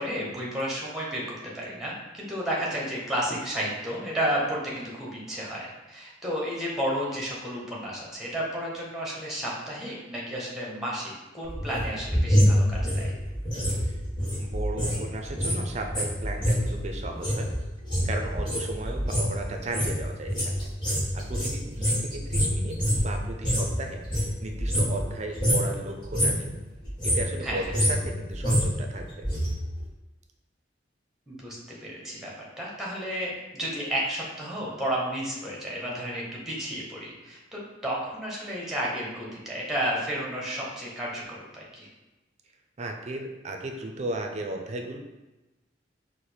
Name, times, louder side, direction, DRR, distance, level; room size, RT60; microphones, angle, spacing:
voice 1, 0.0-13.1 27.4-27.8 31.3-41.9, equal, ahead, -4 dB, 0.9 m, -32 dB
sound 1, 11.4-15.0 15.2-23.7 24.0-25.1 25.3-25.7 26.0-26.5 26.8-29.5 29.8-29.9, equal, 25° left, 1.5 m, -26 dB
voice 2, 14.4-17.5 18.0-20.7 21.1-26.6 27.0-29.2 42.8-45.0, right 2 dB, 35° right, 3 dB, 0.4 m, -35 dB
4.9 x 2.1 x 4.3 m, 1.1 s
head